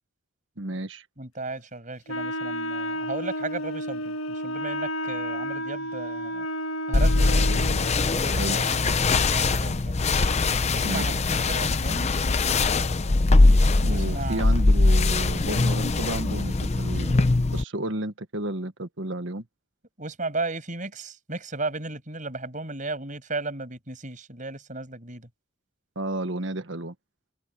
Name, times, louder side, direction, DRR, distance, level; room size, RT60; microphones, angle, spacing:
voice 1, 0.6-1.0 8.3-8.6 10.8-11.1 13.8-17.3 17.5-19.4 25.9-26.9, right 1 dB, 65° right, 1.5 m, -32 dB
voice 2, 1.2-6.5 6.9-7.6 7.9-9.0 9.3-10.0 10.7-12.1 13.9-14.4 20.0-25.3, right 3 dB, 40° right, 6.7 m, -35 dB
Wind instrument woodwind instrument, 2.1-7.9, equal, 85° left, 1.9 m, -31 dB
sound 1, 6.9-17.6, left 3 dB, 35° left, 0.6 m, -22 dB
head